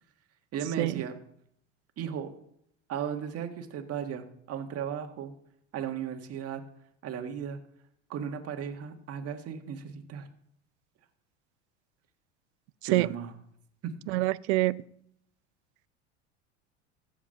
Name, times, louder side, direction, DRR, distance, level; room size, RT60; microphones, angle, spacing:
voice 1, 0.5-1.2 2.0-2.3 2.9-5.3 5.7-6.6 7.0-7.6 8.1-10.3 12.8-13.3 13.8-13.9, right 8 dB, 45° right, 6 dB, 1.8 m, -36 dB
voice 2, 14.1-14.8, right 19 dB, 70° right, 20 dB, 0.5 m, -25 dB
15.0 x 5.0 x 6.6 m, 0.70 s
hypercardioid pair, 85°, 34 cm